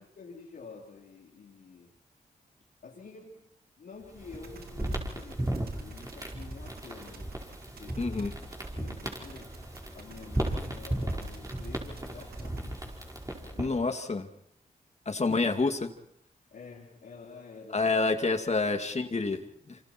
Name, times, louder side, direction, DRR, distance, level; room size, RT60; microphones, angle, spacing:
voice 1, 0.2-1.9 2.8-3.5 3.8-8.3 8.6-9.6 9.9-13.0 13.3-13.9 15.3-15.6 16.5-18.0 19.4-19.5, left 4 dB, 80° left, -4 dB, 3.8 m, -49 dB
sound 1, 4.0-13.8, right 1 dB, 20° right, 5.1 m, -36 dB
sound 2, 4.3-12.6, right 5 dB, 80° right, 1.9 m, -52 dB
voice 2, 8.0-8.3 13.6-14.3 15.1-15.8 17.7-19.4 19.7-19.8, left 3 dB, 45° left, 6 dB, 2.4 m, -28 dB
27.0 x 26.0 x 4.6 m, 0.74 s
cardioid pair, 45°, 16 cm